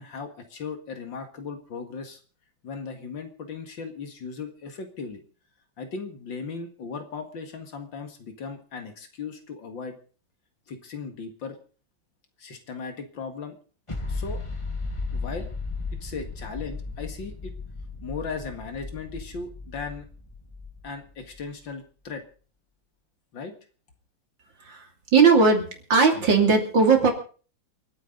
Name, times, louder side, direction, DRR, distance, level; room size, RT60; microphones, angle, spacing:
voice 1, 0.0-2.2 2.6-5.2 5.8-9.9 10.7-11.6 12.4-13.6 14.1-14.4 15.1-15.5 16.0-17.5 18.0-20.1 20.8-22.2 23.3-23.5, left 5 dB, 70° left, 6 dB, 2.6 m, -37 dB
sound 1, 13.9-21.4, left 3 dB, 15° left, 1.5 m, -35 dB
voice 2, 25.1-25.6 25.9-27.1, right 4 dB, 70° right, 3 dB, 3.6 m, -18 dB
28.0 x 9.4 x 4.0 m, 0.39 s
omnidirectional pair, 2.1 m